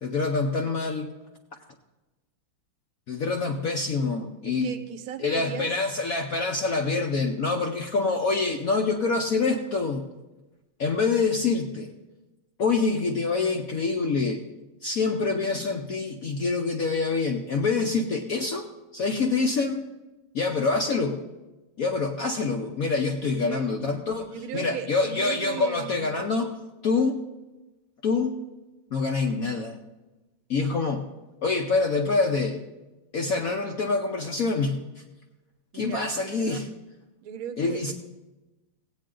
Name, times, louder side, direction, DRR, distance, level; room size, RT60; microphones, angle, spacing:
voice 1, 0.0-1.1 3.1-4.7 5.2-10.1 10.8-11.9 12.6-14.4 14.8-18.7 18.9-19.9 20.3-21.3 21.8-26.5 26.8-27.3 28.0-28.4 28.9-29.8 30.5-31.1 31.4-32.6 33.1-35.0 35.7-36.7 37.6-37.9, left 4 dB, 65° left, 3 dB, 0.9 m, -26 dB
voice 2, 4.5-5.7 23.2-23.6 24.3-26.1 35.7-36.6 37.2-37.9, right 8 dB, 55° right, 9 dB, 1.0 m, -37 dB
16.5 x 8.9 x 3.8 m, 1.1 s
omnidirectional pair, 2.4 m